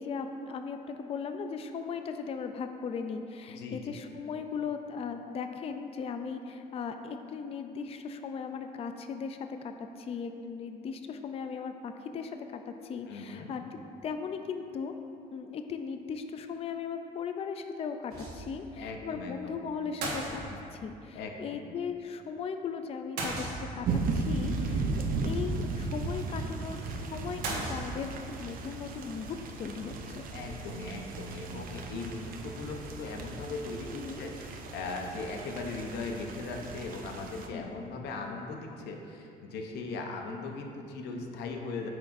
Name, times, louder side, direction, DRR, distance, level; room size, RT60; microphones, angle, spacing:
voice 1, 0.0-13.6 14.0-14.9 15.3-23.9 24.1-28.1 28.4-30.3 33.9-34.3 37.5-37.6, left 6 dB, 35° left, 6 dB, 0.4 m, -38 dB
voice 2, 13.1-13.5 18.8-19.6 21.1-21.6 30.3-41.9, left 3 dB, 80° left, 2 dB, 0.8 m, -39 dB
sound 1, 18.1-18.7 19.0-19.1 20.0-20.9 23.2-24.0 27.4-28.4, right 2 dB, 75° right, 1.5 m, -36 dB
sound 2, 23.8-37.5, right 3 dB, 60° right, 0.7 m, -36 dB
8.8 x 6.0 x 2.6 m, 2.7 s
cardioid pair, 110°, 17 cm